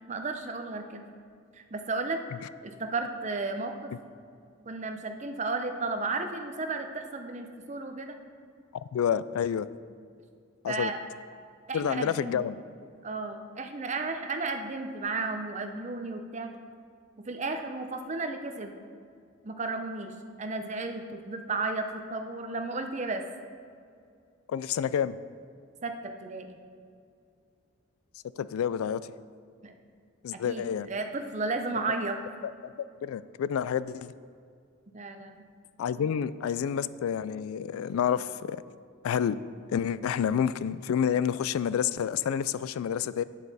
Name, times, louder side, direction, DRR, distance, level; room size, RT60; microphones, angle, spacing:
voice 1, 0.1-1.0 1.5-2.2 2.6-3.9 4.7-8.2 10.7-11.0 11.7-12.4 13.0-16.5 17.2-18.7 19.4-23.3 25.8-26.5 29.6-29.7 30.3-32.2 34.9-35.4 36.0-36.1, right 3 dB, 35° right, 6 dB, 0.6 m, -33 dB
voice 2, 8.9-9.7 10.6-10.9 11.7-12.6 24.5-25.2 28.4-29.0 30.2-30.9 33.0-34.1 35.8-38.6 39.0-39.4 39.7-43.2, left 8 dB, 90° left, 16 dB, 0.3 m, -29 dB
9.1 x 8.1 x 4.1 m, 2.3 s
head